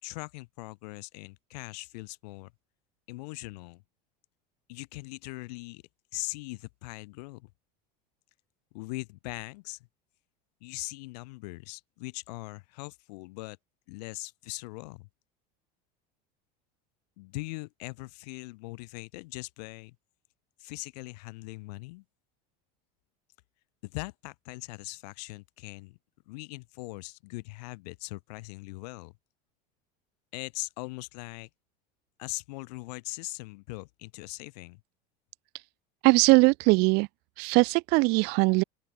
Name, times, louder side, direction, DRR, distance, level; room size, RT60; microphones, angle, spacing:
voice 1, 0.0-2.5 3.1-3.8 4.7-5.8 6.1-7.5 8.7-9.9 10.6-13.6 13.9-15.1 17.2-20.0 20.6-22.0 23.8-26.0 26.3-29.1 30.3-31.5 32.2-34.8, left 24 dB, 75° left, 5.3 m, -40 dB
voice 2, 36.0-37.1 37.4-38.6, right 27 dB, 55° right, 0.4 m, -21 dB
open air
supercardioid pair, 130°, 21 cm